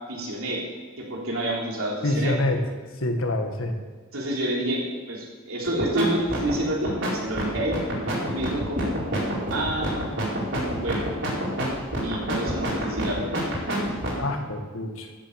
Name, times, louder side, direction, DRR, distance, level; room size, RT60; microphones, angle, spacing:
voice 1, 0.1-0.6 1.0-2.4 4.1-7.8 8.3-8.9 9.5-10.0 10.7-11.1 12.0-13.4, right 1 dB, 85° right, -2 dB, 3.4 m, -28 dB
voice 2, 2.0-2.6 3.0-3.7 14.1-15.1, left 2 dB, 75° left, 5 dB, 1.6 m, -26 dB
sound 1, 5.6-6.0 6.3-14.2, right 1 dB, 65° right, 4.8 m, -28 dB
14.0 x 7.5 x 7.3 m, 1.4 s
head